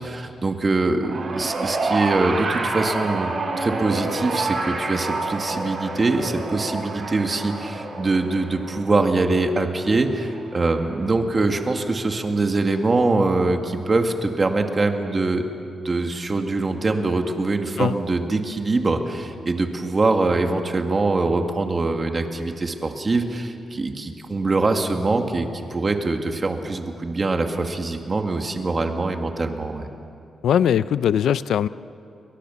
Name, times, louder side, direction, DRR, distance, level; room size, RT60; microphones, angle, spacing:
voice 1, 0.0-15.4 15.8-29.9, right 3 dB, 30° right, 5 dB, 2.0 m, -23 dB
sound 1, 1.0-11.5 12.5-12.6, right 3 dB, 50° right, 4.7 m, -29 dB
voice 2, 30.4-31.7, left 9 dB, 90° left, 16 dB, 0.5 m, -20 dB
30.0 x 22.5 x 7.2 m, 2.7 s
wide cardioid pair, 140°, 0 cm